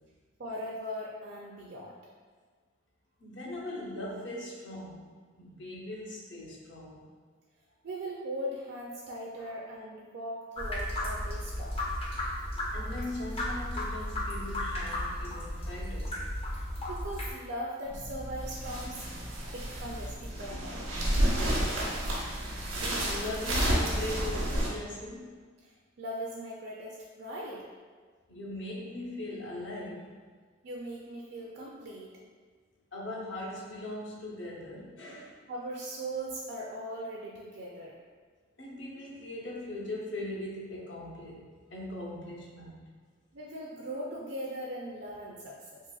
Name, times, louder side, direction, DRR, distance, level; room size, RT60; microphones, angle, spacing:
voice 1, 0.4-1.9 7.8-11.8 16.5-19.0 19.5-20.8 25.6-27.6 30.6-32.1 35.5-37.9 43.3-45.8, right 1 dB, 55° right, -3 dB, 0.4 m, -39 dB
voice 2, 3.2-7.1 9.4-9.5 12.7-16.2 22.7-25.4 28.3-30.2 32.9-35.4 38.6-42.8, left 1 dB, 60° left, -4 dB, 0.7 m, -40 dB
sound 1, 10.6-17.3, left 1 dB, 30° left, 0.5 m, -34 dB
sound 2, 17.9-24.7, right 1 dB, 90° right, 0.8 m, -31 dB
3.8 x 2.9 x 2.3 m, 1.6 s
head